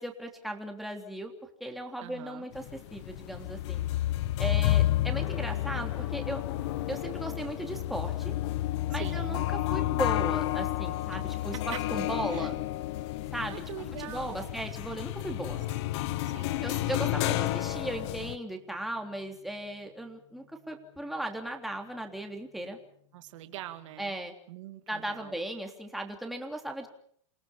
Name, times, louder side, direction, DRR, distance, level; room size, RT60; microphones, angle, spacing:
voice 1, 0.0-1.3 1.6-3.8 4.4-6.4 6.9-8.3 8.9-9.4 9.7-12.6 13.3-13.6 14.0-15.6 16.6-22.8 24.0-24.3 24.9-26.9, right 1 dB, ahead, 2 dB, 3.4 m, -37 dB
voice 2, 2.0-2.5 8.9-9.4 11.1-11.8 12.3-12.5 13.5-14.6 16.2-16.6 23.1-24.2 24.5-25.4, right 13 dB, 75° right, 8 dB, 2.3 m, -44 dB
sound 1, 2.5-18.3, left 15 dB, 65° left, 1.2 m, -31 dB
Gong, 5.1-24.1, left 12 dB, 90° left, 2.5 m, -52 dB
29.0 x 18.0 x 7.2 m, 0.63 s
supercardioid pair, 140°, 16 cm